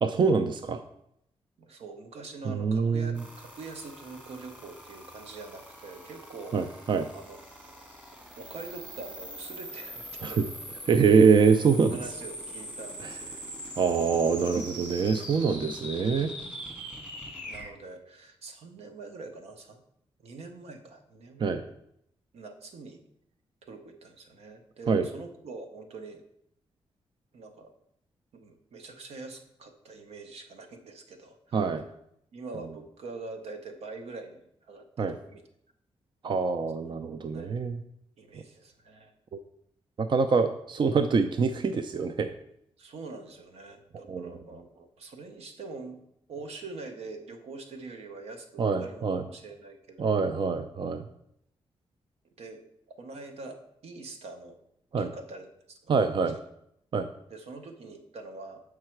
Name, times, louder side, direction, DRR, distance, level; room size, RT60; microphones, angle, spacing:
voice 1, 0.0-0.8 2.5-3.2 6.5-7.1 10.2-10.5 10.9-12.0 13.0-13.1 13.8-16.3 21.4-21.6 24.9-25.1 31.5-31.8 35.0-35.2 36.2-37.8 39.3-39.4 40.0-42.3 44.1-44.3 48.6-49.2 50.0-51.0 54.9-55.1 55.9-56.4 56.9-57.1, right 5 dB, 50° right, 9 dB, 0.4 m, -25 dB
voice 2, 1.6-6.5 7.1-7.4 7.6-7.7 8.4-10.4 11.9-13.3 17.4-19.8 20.2-21.6 22.3-23.0 23.6-26.2 27.3-27.7 28.3-31.7 32.3-35.4 36.9-37.5 38.2-39.1 42.8-46.0 46.3-50.3 52.4-52.6 53.0-54.6 55.0-55.5 57.3-58.6, right 3 dB, 80° right, 6 dB, 1.0 m, -44 dB
sound 1, 3.1-17.7, equal, 15° right, 1.8 m, -42 dB
7.4 x 4.8 x 4.5 m, 0.75 s
cardioid pair, 75°, 10 cm